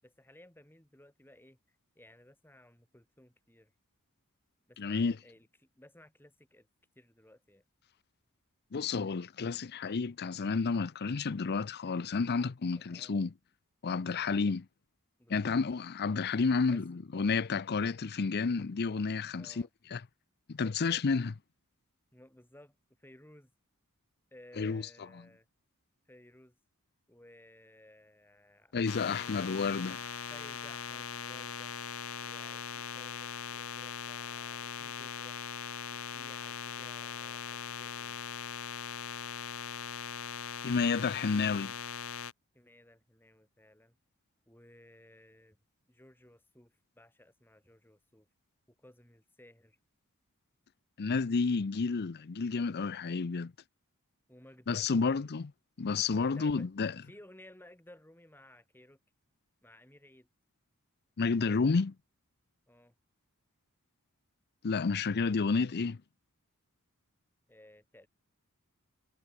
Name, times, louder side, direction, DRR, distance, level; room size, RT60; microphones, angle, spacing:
voice 1, 0.0-1.6 1.9-3.7 4.7-5.5 5.8-6.7 6.9-7.6 12.9-13.2 14.2-14.5 15.2-15.6 16.7-16.8 19.4-19.7 22.1-23.5 24.3-25.5 26.1-26.6 27.1-28.7 30.3-31.7 42.5-43.9 44.5-45.6 45.9-48.3 48.7-49.8 54.3-55.3 56.3-56.7 57.0-59.0 59.6-60.3 62.7-62.9 67.5-68.1, left 1 dB, 10° left, 6.3 m, -58 dB
voice 2, 4.8-5.2 8.7-13.3 13.8-14.6 15.3-20.0 20.5-21.4 24.6-24.8 28.7-30.0 40.6-41.7 51.0-53.5 54.7-55.5 55.8-57.0 61.2-61.9 64.6-66.0, left 4 dB, 50° left, 0.6 m, -30 dB
sound 1, 28.9-42.3, left 7 dB, 70° left, 2.1 m, -40 dB
head